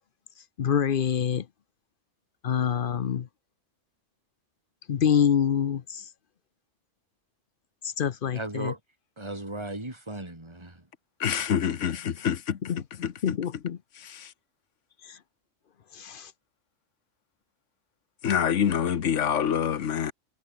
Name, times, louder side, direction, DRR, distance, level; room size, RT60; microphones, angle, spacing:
voice 1, 0.6-1.5 2.4-3.3 4.9-6.1 7.8-8.7 12.7-12.8 13.2-13.8 15.0-15.2 15.9-16.3, left 8 dB, 50° left, 0.8 m, -26 dB
voice 2, 8.3-8.8 9.2-10.8, right 1 dB, 20° right, 3.9 m, -36 dB
voice 3, 11.2-12.6 13.0-13.1 14.1-14.3 18.2-20.1, left 8 dB, 80° left, 1.4 m, -26 dB
omnidirectional pair, 1.2 m